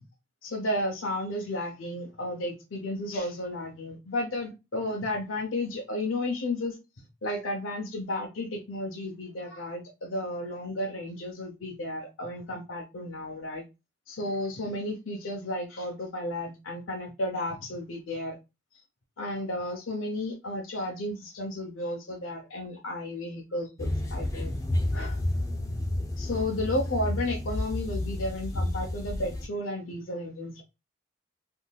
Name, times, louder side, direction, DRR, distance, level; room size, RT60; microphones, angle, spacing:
voice 1, 0.4-6.8 7.2-13.6 14.1-18.4 19.2-24.5 24.9-25.2 26.2-30.6, left 1 dB, 85° left, 1 dB, 0.7 m, -33 dB
sound 1, 23.8-29.5, left 1 dB, 15° left, 0.5 m, -31 dB
3.6 x 2.6 x 2.3 m, 0.25 s
head